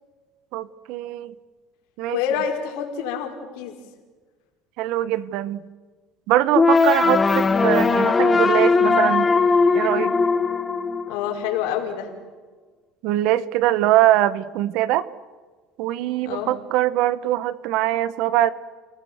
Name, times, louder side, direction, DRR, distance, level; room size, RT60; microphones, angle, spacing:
voice 1, 0.5-1.3 2.0-2.2 4.8-5.6 6.3-9.3 9.7-10.1 13.0-15.1 15.8-18.5, right 14 dB, 60° right, 17 dB, 1.0 m, -22 dB
voice 2, 2.1-3.8 11.1-12.1 16.2-16.5, left 8 dB, 75° left, 1 dB, 5.2 m, -27 dB
sound 1, 6.5-11.6, left 4 dB, 15° left, 1.0 m, -19 dB
30.0 x 19.0 x 7.9 m, 1.4 s
cardioid pair, 165°, 0 cm